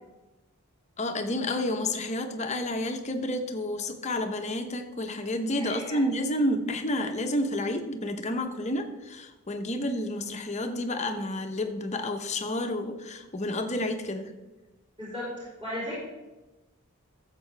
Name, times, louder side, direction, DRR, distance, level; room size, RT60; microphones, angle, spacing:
voice 1, 1.0-14.3, left 1 dB, 30° left, 6 dB, 0.9 m, -30 dB
voice 2, 5.6-6.0 15.0-15.9, left 1 dB, 20° right, -10 dB, 4.0 m, -36 dB
13.5 x 7.6 x 3.4 m, 1.1 s
head